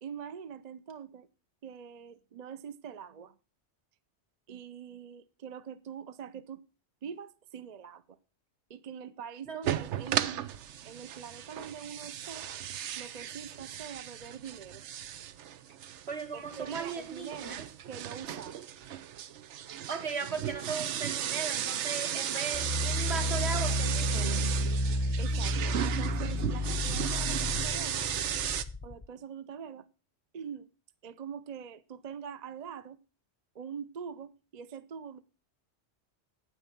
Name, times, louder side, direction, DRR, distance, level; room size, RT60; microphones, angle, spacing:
voice 1, 0.0-1.3 1.6-3.4 4.5-6.6 7.0-8.2 8.7-10.5 10.8-12.5 13.0-14.8 16.3-17.6 17.9-18.6 25.2-28.0 28.8-29.9 30.3-30.7 31.0-33.0 33.5-35.2, right 7 dB, 45° right, 0.6 m, -44 dB
sound 1, 9.6-28.6, right 10 dB, 90° right, 1.0 m, -35 dB
voice 2, 16.1-17.7 19.9-24.5, right 5 dB, 70° right, 2.1 m, -37 dB
sound 2, 22.5-29.1, left 1 dB, 25° left, 0.7 m, -31 dB
9.0 x 9.0 x 5.8 m
omnidirectional pair, 1.1 m